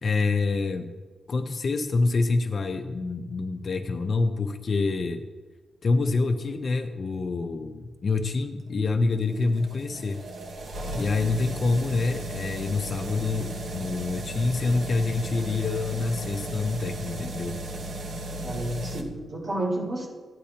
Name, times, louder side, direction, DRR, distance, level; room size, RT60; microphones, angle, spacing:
voice 1, 0.0-0.9 1.3-5.2 5.8-10.2 10.9-17.6, left 3 dB, 40° left, 6 dB, 0.6 m, -26 dB
sound 1, 8.7-19.0, right 1 dB, 65° right, 1.1 m, -36 dB
voice 2, 18.4-20.1, right 1 dB, 40° right, -4 dB, 4.1 m, -30 dB
15.0 x 10.0 x 2.8 m, 1.3 s
wide cardioid pair, 175°, 0 cm